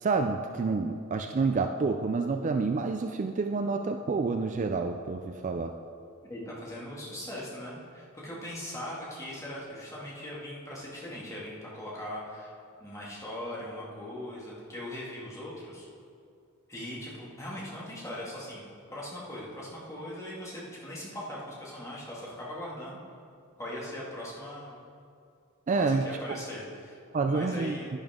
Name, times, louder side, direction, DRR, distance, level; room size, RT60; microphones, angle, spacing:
voice 1, 0.0-5.7 25.7-26.4 27.1-27.8, right 4 dB, 35° right, 6 dB, 0.4 m, -28 dB
voice 2, 6.3-12.5 12.8-15.9 16.7-23.0 23.6-24.8 25.8-27.0 27.3-27.9, left 1 dB, 15° left, -6 dB, 2.1 m, -40 dB
11.0 x 10.5 x 3.7 m, 2.4 s
head